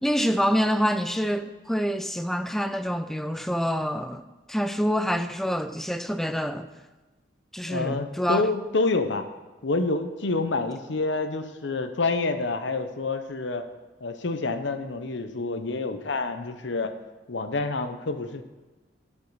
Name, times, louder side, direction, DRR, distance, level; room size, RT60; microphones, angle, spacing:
voice 1, 0.0-4.2 4.5-6.7 7.5-8.4, equal, ahead, 0.4 m, -26 dB
voice 2, 7.7-9.2 9.6-13.6 14.0-16.9 17.3-18.4, left 3 dB, 75° left, 0.8 m, -28 dB
14.5 x 5.5 x 4.8 m
head